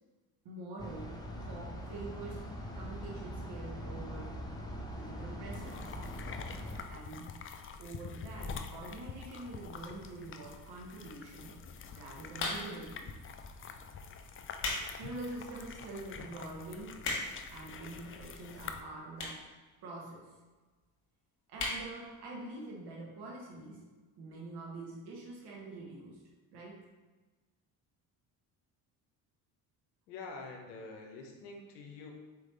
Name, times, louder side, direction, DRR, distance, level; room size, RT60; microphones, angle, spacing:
voice 1, 0.4-2.5 2.7-4.4 4.9-5.9 6.9-7.3 7.8-11.5 11.9-13.2 15.0-17.1 17.5-19.5 19.8-20.3 21.5-23.8 24.2-26.2 26.5-26.8, right 2 dB, 60° right, -2 dB, 1.2 m, -45 dB
sound 1, 0.8-6.8, equal, 10° left, 0.9 m, -42 dB
sound 2, 5.5-18.8, left 5 dB, 30° left, 0.4 m, -46 dB
sound 3, 12.3-12.9 13.6-13.8 14.3-14.9 15.3-15.4 16.0-16.1 16.3-16.4 16.6-17.5 18.3-18.4 19.1-19.5 19.8-19.9 20.1-20.2 20.4-20.5 20.8-21.0 21.5-21.8 22.2-22.3 22.5-22.6, left 3 dB, 60° left, 1.4 m, -35 dB
voice 2, 30.1-32.1, left 3 dB, 90° left, 1 dB, 0.8 m, -46 dB
4.5 x 3.5 x 3.2 m, 1.3 s
hypercardioid pair, 55°, 46 cm